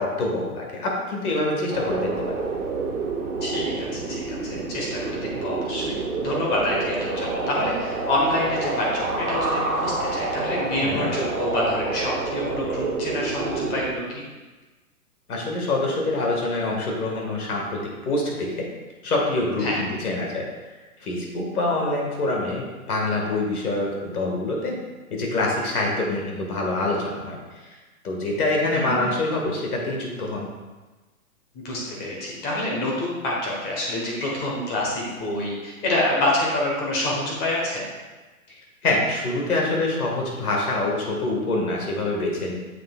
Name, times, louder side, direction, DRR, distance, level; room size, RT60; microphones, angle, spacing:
voice 1, 0.0-2.5 10.8-11.1 15.3-18.7 19.0-20.7 21.0-24.8 25.1-27.7 28.0-30.5 38.8-42.6, left 2 dB, 75° left, -1 dB, 1.9 m, -25 dB
sound 1, 1.7-13.9, right 3 dB, 75° right, 1.5 m, -28 dB
voice 2, 3.4-14.2 19.6-19.8 28.7-29.1 31.5-37.8, left 1 dB, 20° left, -3 dB, 1.3 m, -27 dB
7.3 x 5.7 x 2.4 m, 1.2 s
hypercardioid pair, 145°, 44 cm